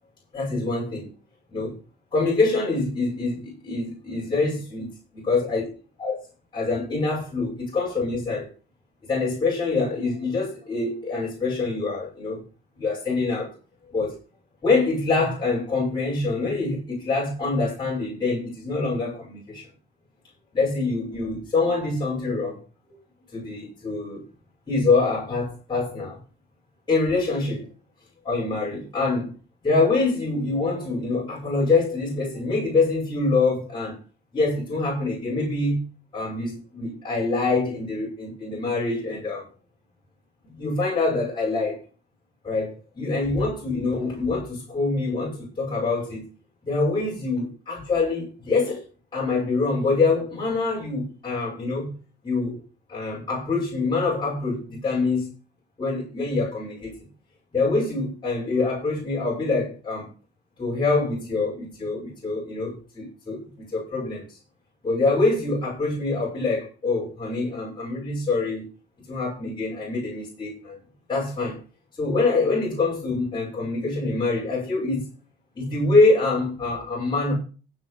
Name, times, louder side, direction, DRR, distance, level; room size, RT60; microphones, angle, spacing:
voice 1, 0.3-1.1 1.5-1.7 2.1-4.9 5.3-5.6 6.0-6.2 6.5-8.5 9.1-12.4 12.8-13.5 13.9-14.2 14.6-19.7 20.5-22.6 22.9-23.0 23.3-24.2 24.7-26.2 26.9-27.7 28.2-29.3 29.6-34.0 34.3-35.8 36.1-39.5 40.5-41.8 42.4-46.2 46.6-48.8 49.1-51.9 52.2-52.6 52.9-55.3 55.8-56.9 57.5-60.1 60.6-64.4 64.8-68.6 69.1-70.8 71.1-71.6 72.0-75.1 75.5-77.3, left 3 dB, 25° left, 6.4 m, -25 dB
16.0 x 6.4 x 5.0 m
cardioid pair, 135°, 19 cm